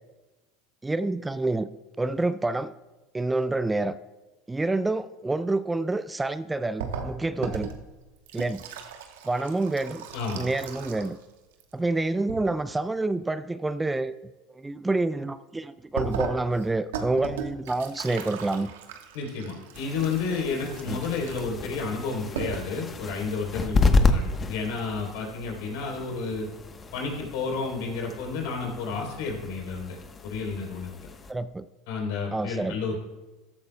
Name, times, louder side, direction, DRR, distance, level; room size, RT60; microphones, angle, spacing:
voice 1, 0.8-1.7 2.0-2.7 3.1-4.0 4.5-7.7 8.3-8.6 9.2-10.1 10.4-11.2 11.7-14.1 14.5-18.7 20.9-21.0 24.1-24.2 31.3-31.7 32.3-32.8, right 2 dB, 10° right, 14 dB, 0.4 m, -28 dB
sound 1, 6.8-11.3 11.5-12.4 16.0-21.7 22.1-22.2 22.4-22.8, right 6 dB, 75° right, 1.2 m, -37 dB
voice 2, 19.1-26.5 26.9-30.0 30.2-30.9 31.9-33.0, left 4 dB, 70° left, 1 dB, 3.6 m, -31 dB
sound 2, 19.7-31.3, left 3 dB, 30° left, 1.0 m, -30 dB
14.5 x 12.5 x 2.3 m, 1.1 s
hypercardioid pair, 85°, 0 cm